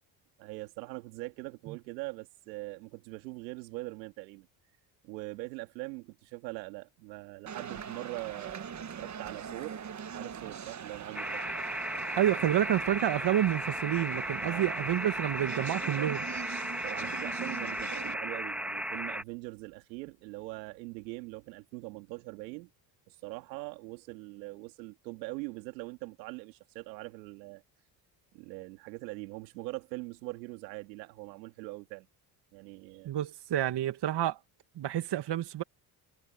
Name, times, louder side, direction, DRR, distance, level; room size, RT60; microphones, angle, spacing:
voice 1, 0.4-4.5 5.0-8.6 9.0-9.8 10.1-11.4 14.4-14.7 16.8-22.7 23.1-27.6 28.3-32.1 32.5-33.1, right 23 dB, 85° right, 2.3 m, -42 dB
sound 1, 7.5-18.1, right 7 dB, 35° right, 1.4 m, -42 dB
sound 2, 11.1-19.2, equal, ahead, 2.1 m, -35 dB
voice 2, 12.2-16.3 33.1-34.4 34.8-35.6, right 12 dB, 55° right, 1.9 m, -29 dB
hypercardioid pair, 60°, 50 cm